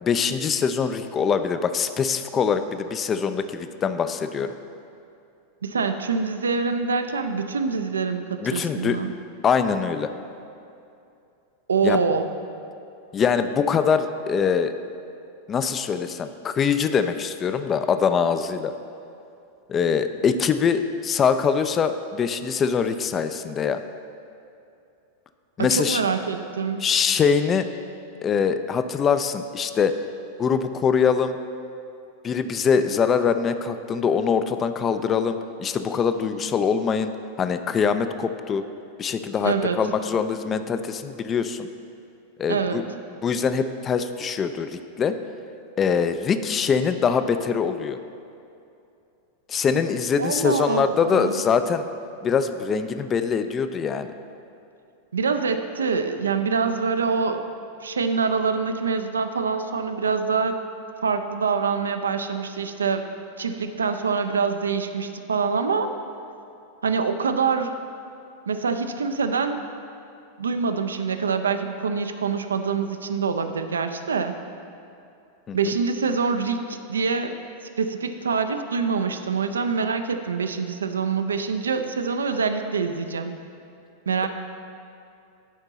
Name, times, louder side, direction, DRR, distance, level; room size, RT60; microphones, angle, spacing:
voice 1, 0.0-4.5 8.4-9.0 9.4-10.1 11.8-12.0 13.1-14.7 15.5-18.7 19.7-23.8 25.6-26.0 26.8-27.7 28.2-30.0 30.4-31.4 32.2-37.1 37.4-38.6 39.0-41.7 42.4-42.8 43.2-45.1 45.8-48.0 49.5-51.9 52.2-54.1 75.5-75.6, left 6 dB, 25° left, 10 dB, 0.3 m, -23 dB
voice 2, 5.6-9.1 11.7-12.3 25.6-26.8 39.4-39.8 42.5-42.8 50.2-51.4 55.1-57.4 57.8-60.6 61.0-63.1 63.4-65.9 66.8-67.7 68.5-69.6 70.4-74.3 75.5-77.3 77.8-83.3 84.1-84.3, right 5 dB, 70° right, 8 dB, 0.4 m, -25 dB
11.0 x 4.4 x 4.0 m, 2.6 s
figure-of-eight pair, 90°, 0 cm